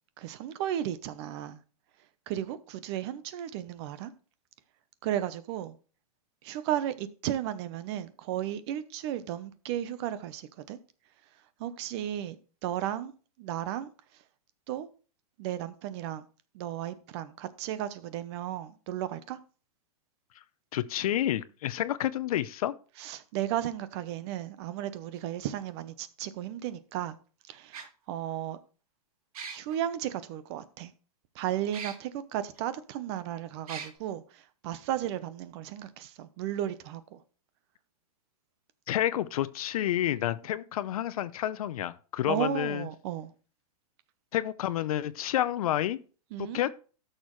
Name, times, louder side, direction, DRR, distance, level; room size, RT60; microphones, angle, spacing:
voice 1, 0.2-1.6 2.3-4.1 5.0-5.7 6.4-10.8 11.6-12.4 12.6-13.1 13.4-13.9 14.7-14.9 15.4-16.2 16.5-19.4 23.0-27.2 27.5-28.6 29.5-30.9 31.3-37.2 42.3-43.3 46.3-46.6, right 11 dB, 45° right, 0.9 m, -34 dB
voice 2, 20.7-22.7 38.9-42.9 44.3-46.0 46.4-46.7, left 12 dB, 65° left, 0.7 m, -29 dB
sound 1, 25.2-25.3 26.7-26.8 27.7-27.9 29.3-29.8 31.7-32.0 32.6-32.7 33.7-33.9, right 6 dB, 65° right, 2.0 m, -39 dB
13.5 x 6.6 x 3.2 m
hypercardioid pair, 140°, 20 cm